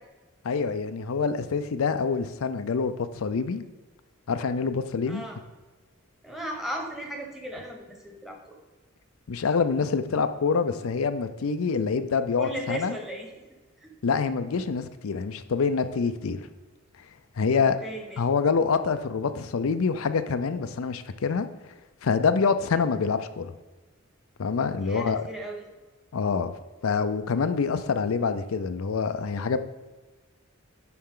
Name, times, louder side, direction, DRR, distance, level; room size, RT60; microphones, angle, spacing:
voice 1, 0.4-3.7 4.3-5.2 9.3-12.9 14.0-16.4 17.4-17.8 18.2-21.5 22.0-23.5 24.4-25.2 26.1-26.5 26.8-29.6, left 5 dB, 85° left, 10 dB, 0.5 m, -26 dB
voice 2, 5.1-5.4 6.2-8.4 12.4-13.5 13.8-13.9 17.6-18.2 24.8-25.7, right 1 dB, ahead, 1 dB, 1.1 m, -36 dB
10.5 x 4.3 x 3.8 m, 1.2 s
head